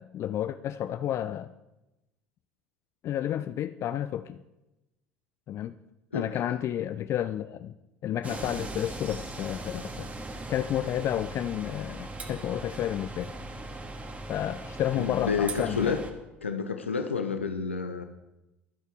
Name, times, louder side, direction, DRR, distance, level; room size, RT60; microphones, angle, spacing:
voice 1, 0.0-1.5 3.0-4.4 5.5-5.7 6.1-7.7 8.0-10.1 10.5-13.3 14.3-16.0, left 11 dB, 45° left, 11 dB, 0.5 m, -31 dB
sound 1, 8.2-16.1, right 2 dB, 25° right, 2.0 m, -39 dB
voice 2, 15.0-16.0 16.4-18.0, left 5 dB, 85° left, 7 dB, 0.7 m, -29 dB
24.0 x 8.1 x 3.7 m, 0.97 s
figure-of-eight pair, 60°, 6 cm